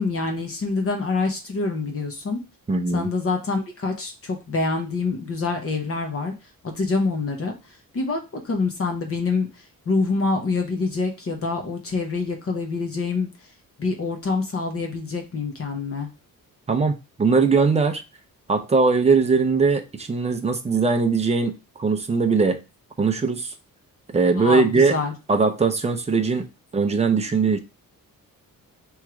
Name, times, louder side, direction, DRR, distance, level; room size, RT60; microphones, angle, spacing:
voice 1, 0.0-2.4 2.9-6.3 6.6-7.5 7.9-13.3 13.8-16.1 24.4-25.1, left 3 dB, 40° left, 0.8 m, -26 dB
voice 2, 2.7-3.1 16.7-18.0 18.5-22.6 23.0-23.5 24.1-25.0 25.3-26.5 26.7-27.6, right 4 dB, 20° right, 0.5 m, -20 dB
3.6 x 3.1 x 4.6 m
wide cardioid pair, 175°, 34 cm